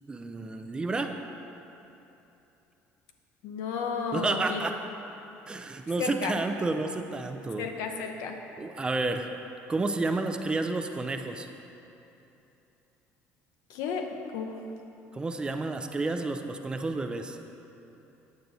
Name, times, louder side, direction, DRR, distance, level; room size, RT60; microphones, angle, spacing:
voice 1, 0.1-1.1 4.1-4.8 5.5-7.7 8.6-9.3 9.7-11.5 15.1-17.4, right 3 dB, 15° right, 5 dB, 0.3 m, -30 dB
voice 2, 3.4-4.6 6.0-6.3 7.6-8.4 13.7-14.6, left 5 dB, 80° left, 3 dB, 0.6 m, -33 dB
9.0 x 6.8 x 2.7 m, 2.9 s
cardioid pair, 135°, 5 cm